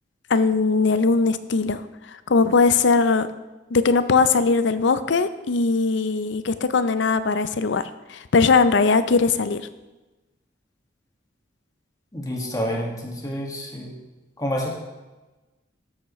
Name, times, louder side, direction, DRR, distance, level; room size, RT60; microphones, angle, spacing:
voice 1, 0.3-1.8 2.3-3.3 3.7-7.8 8.1-9.6, left 4 dB, 70° left, 12 dB, 0.5 m, -20 dB
voice 2, 12.1-14.0 14.4-14.7, equal, 20° left, -1 dB, 1.7 m, -28 dB
13.5 x 7.2 x 3.1 m, 1.1 s
head